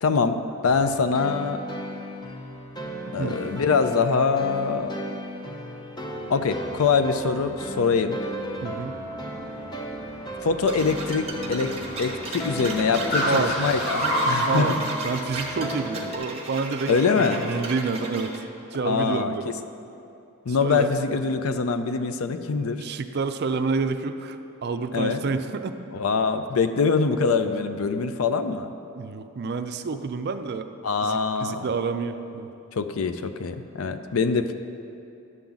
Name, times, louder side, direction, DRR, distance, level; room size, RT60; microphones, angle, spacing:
voice 1, 0.0-1.6 3.1-4.9 6.3-8.2 10.4-14.7 16.9-17.5 18.8-19.5 20.5-22.8 24.9-25.2 25.9-28.7 30.8-31.7 32.8-34.6, left 5 dB, 75° left, 9 dB, 0.5 m, -24 dB
sound 1, 0.6-16.2, equal, 20° left, 0.7 m, -36 dB
Car, 6.1-15.0, equal, 50° left, 2.1 m, -32 dB
voice 2, 8.6-9.0 13.3-13.5 14.4-14.8 15.0-18.3 18.7-19.5 20.5-20.9 22.8-25.7 27.5-27.6 28.9-30.7 31.0-32.5, right 4 dB, 50° right, 9 dB, 0.4 m, -28 dB
sound 2, 10.7-18.4, right 3 dB, 30° right, 1.0 m, -34 dB
11.0 x 3.9 x 7.2 m, 2.7 s
head